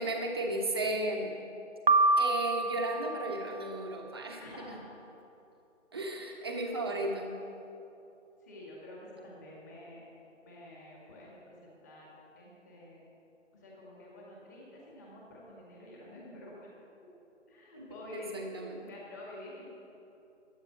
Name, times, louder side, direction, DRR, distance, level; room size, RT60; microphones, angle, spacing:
voice 1, 0.0-1.3 2.2-4.4 5.9-7.4 17.8-18.9, right 1 dB, 20° right, 0 dB, 1.1 m, -34 dB
Piano, 1.9-4.0, right 3 dB, 45° right, 0.6 m, -28 dB
voice 2, 4.4-5.0 6.0-6.5 6.8-7.0 8.4-10.0 10.4-12.1 12.4-13.0 13.5-16.7 17.5-18.3 18.8-19.7, left 1 dB, 15° left, -5 dB, 1.9 m, -49 dB
12.5 x 9.0 x 8.7 m, 2.8 s
figure-of-eight pair, 170°, 37 cm